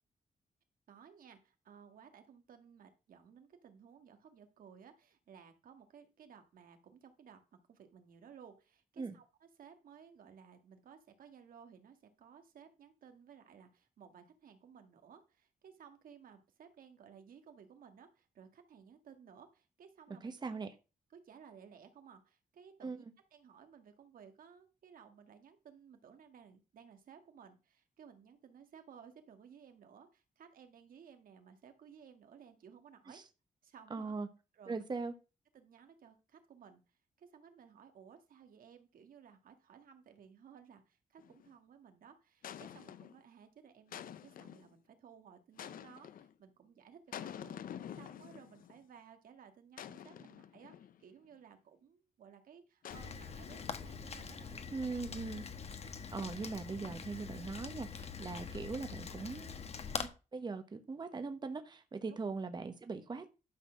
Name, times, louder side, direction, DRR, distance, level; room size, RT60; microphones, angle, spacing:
voice 1, 0.9-7.4 7.7-20.3 20.6-20.7 21.1-33.2 33.6-34.2 34.5-34.9 35.5-36.8 37.2-54.7 62.1-62.2, right 7 dB, 80° right, 6 dB, 1.6 m, -58 dB
voice 2, 20.2-20.7 22.8-23.0 33.1-33.2 33.9-34.3 34.7-35.1 54.7-55.4 56.1-59.6 60.0-63.3, right 4 dB, 30° right, 8 dB, 1.0 m, -40 dB
sound 1, 41.2-41.5 42.4-43.2 43.9-44.7 45.6-46.3 47.1-48.8 49.8-51.0 52.8-54.1, left 9 dB, 80° left, 0.6 m, -48 dB
Rain, 52.9-60.1, left 6 dB, 45° left, 1.1 m, -44 dB
11.5 x 4.1 x 6.3 m, 0.31 s
wide cardioid pair, 125°, 14 cm